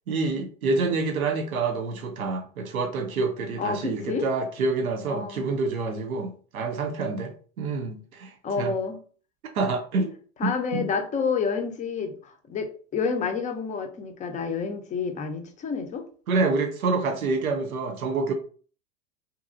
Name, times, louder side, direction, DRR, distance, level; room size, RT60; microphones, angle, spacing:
voice 1, 0.1-8.7 9.5-10.1 10.4-10.9 16.3-18.3, right 3 dB, 90° right, 3 dB, 0.6 m, -27 dB
voice 2, 3.6-4.3 5.1-5.5 8.4-9.0 10.4-16.1, left 5 dB, 20° left, 6 dB, 0.5 m, -29 dB
2.8 x 2.5 x 2.5 m, 0.42 s
hypercardioid pair, 90°, 41 cm